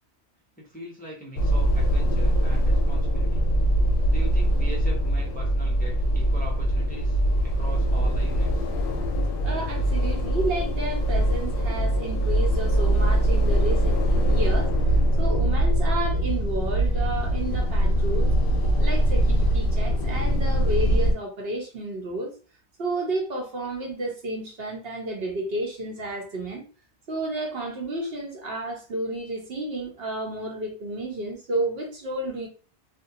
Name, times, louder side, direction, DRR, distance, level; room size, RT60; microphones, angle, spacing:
voice 1, 0.6-3.5 4.1-8.7, equal, 10° left, 0.5 m, -41 dB
sound 1, 1.3-21.1, right 1 dB, 60° left, 0.7 m, -22 dB
voice 2, 9.4-14.7 15.2-18.3 18.8-22.3 22.8-26.6 27.1-32.5, right 2 dB, 65° right, 1.0 m, -31 dB
2.6 x 2.2 x 2.7 m
omnidirectional pair, 1.1 m